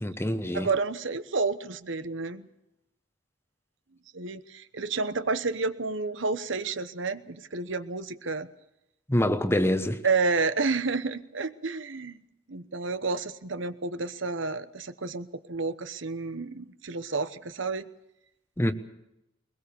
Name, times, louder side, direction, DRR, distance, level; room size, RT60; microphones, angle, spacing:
voice 1, 0.0-0.7 9.1-10.0 18.6-18.7, left 1 dB, 10° left, 1.1 m, -25 dB
voice 2, 0.5-2.5 4.1-8.5 10.0-12.2 12.5-17.9, right 4 dB, 65° right, 1.0 m, -30 dB
21.5 x 21.0 x 7.0 m
head